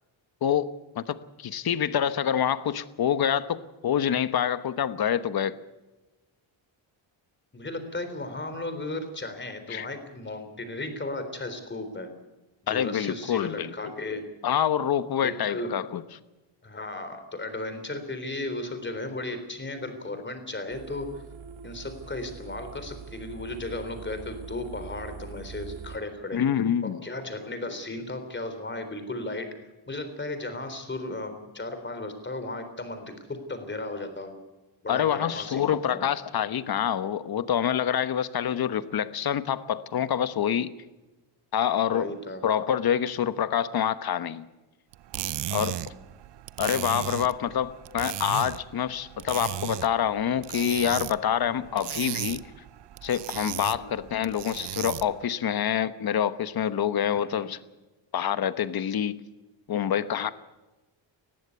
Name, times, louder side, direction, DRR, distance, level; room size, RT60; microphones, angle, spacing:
voice 1, 0.4-5.6 9.7-9.9 12.7-13.7 14.4-16.0 26.3-27.0 34.9-40.7 41.5-42.1 42.4-44.5 45.5-45.8 46.6-52.4 53.0-57.6 58.1-59.2 59.7-60.3, left 9 dB, 50° left, 13 dB, 1.1 m, -26 dB
voice 2, 7.5-12.1 12.6-14.3 15.2-15.8 16.6-21.2 21.6-26.4 27.0-29.5 29.9-34.4 34.8-36.1 41.9-42.4 45.6-46.0 51.6-51.8 53.7-53.9 57.1-57.6, left 2 dB, 20° left, 8 dB, 3.7 m, -35 dB
sound 1, 20.7-26.0, right 6 dB, 80° right, 2.4 m, -43 dB
sound 2, 44.9-55.3, right 13 dB, 60° right, 0.7 m, -36 dB
20.0 x 14.5 x 9.5 m, 1.1 s
cardioid pair, 110°, 48 cm